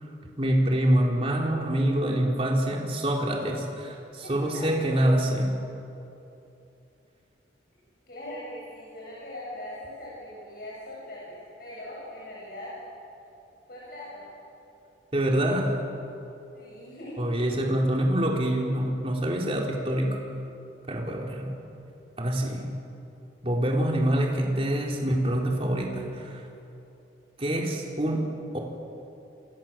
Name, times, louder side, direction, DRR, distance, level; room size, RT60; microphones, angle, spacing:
voice 1, 0.4-5.5 15.1-15.8 17.2-20.2 20.9-21.6 22.2-22.7 23.4-26.5 27.4-28.3 28.5-28.6, right 1 dB, 30° right, -1 dB, 4.2 m, -25 dB
voice 2, 4.2-4.7 8.1-12.7 13.7-14.3 16.5-17.5, left 1 dB, 50° left, -6 dB, 7.8 m, -41 dB
27.5 x 27.5 x 7.7 m, 2.8 s
head